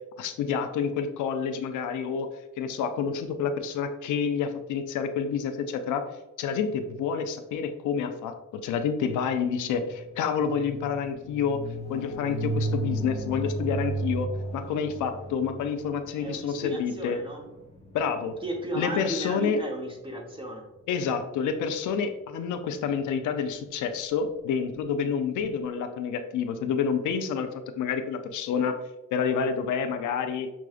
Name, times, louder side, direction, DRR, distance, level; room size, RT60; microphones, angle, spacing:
voice 1, 0.2-2.3 2.6-6.0 6.4-11.6 11.9-17.2 17.9-18.4 18.8-19.6 20.9-28.8 29.1-30.5, left 6 dB, 80° left, 7 dB, 0.5 m, -28 dB
sound 1, 9.0-18.9, right 2 dB, 20° left, 1.0 m, -35 dB
voice 2, 16.2-17.4 18.4-20.7, right 1 dB, 15° right, 0 dB, 1.0 m, -35 dB
6.0 x 2.3 x 2.4 m, 0.99 s
cardioid pair, 90°, 30 cm